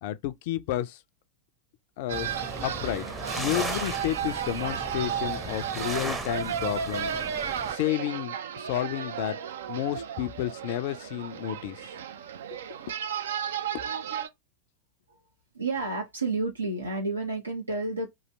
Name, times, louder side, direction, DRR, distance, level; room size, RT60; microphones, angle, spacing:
voice 1, 0.0-1.0 2.0-3.1 3.4-7.1 7.7-9.4 9.7-11.9 12.5-12.6 13.7-13.8, left 13 dB, 50° left, 0.4 m, -31 dB
sound 1, 2.1-7.8, right 1 dB, 10° right, 0.7 m, -37 dB
sound 2, 2.1-14.3, right 8 dB, 60° right, 0.5 m, -34 dB
voice 2, 15.5-18.2, right 3 dB, 80° right, 0.9 m, -30 dB
3.1 x 2.7 x 3.9 m
figure-of-eight pair, 90°, 0 cm